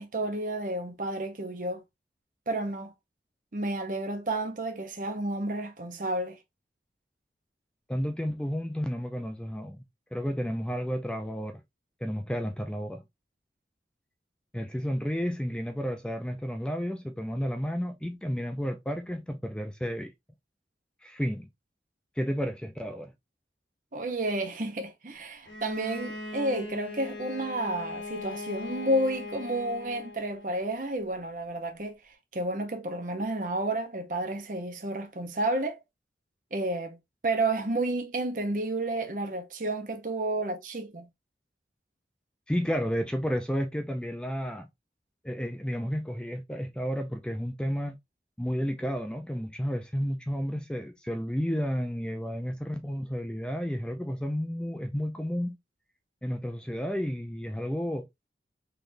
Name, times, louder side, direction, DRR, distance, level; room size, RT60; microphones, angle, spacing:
voice 1, 0.0-1.8 2.5-2.9 3.5-6.4 23.9-32.0 32.3-35.8 36.5-37.0 37.2-41.1, right 1 dB, 50° right, 0.8 m, -31 dB
voice 2, 7.9-9.8 10.1-11.6 12.0-13.0 14.5-20.1 21.0-21.5 22.2-23.1 42.5-44.7 45.2-48.0 48.4-55.5 56.2-58.1, equal, 5° left, 0.4 m, -32 dB
Bowed string instrument, 25.5-30.6, left 3 dB, 90° left, 1.6 m, -39 dB
3.8 x 3.3 x 2.6 m
head